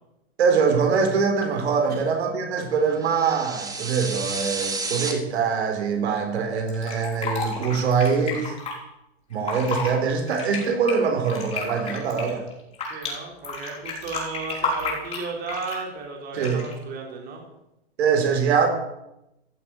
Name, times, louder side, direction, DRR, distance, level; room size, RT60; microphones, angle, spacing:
voice 1, 0.4-8.6 9.3-12.4 16.3-16.6 18.0-18.7, right 5 dB, 80° right, 4 dB, 3.7 m, -23 dB
sound 1, 3.0-5.1, right 3 dB, 10° right, 1.8 m, -31 dB
Fill (with liquid), 6.7-8.7 9.3-9.9 10.3-13.1 13.4-15.9 16.4-16.8, left 4 dB, 20° left, 5.3 m, -31 dB
voice 2, 12.9-17.4, right 4 dB, 30° right, 1 dB, 4.0 m, -34 dB
15.5 x 7.7 x 9.1 m, 0.88 s
supercardioid pair, 145°, 32 cm